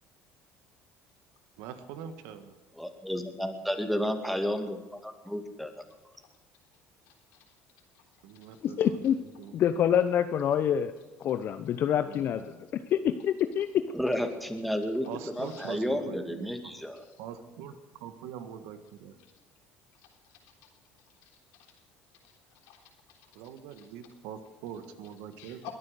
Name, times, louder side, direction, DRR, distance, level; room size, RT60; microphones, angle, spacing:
voice 1, 1.6-2.6 8.2-9.6 12.0-12.5 15.1-16.7 17.2-19.2 23.3-25.6, right 8 dB, 80° right, 9 dB, 1.6 m, -43 dB
voice 2, 2.8-5.7 13.9-15.1 15.4-17.0, equal, ahead, 5 dB, 2.4 m, -31 dB
voice 3, 7.0-7.4 7.9-8.0 8.3-8.6 15.3-15.8 16.9-17.2 19.9-20.7 21.0-21.7 22.2-23.4 23.8-23.9 25.4-25.7, left 13 dB, 80° left, 2 dB, 3.4 m, -53 dB
voice 4, 8.6-9.2 9.5-10.9 11.2-12.4 12.7-13.7, left 9 dB, 55° left, 10 dB, 0.7 m, -26 dB
21.5 x 9.5 x 6.7 m, 1.2 s
supercardioid pair, 85°, 4 cm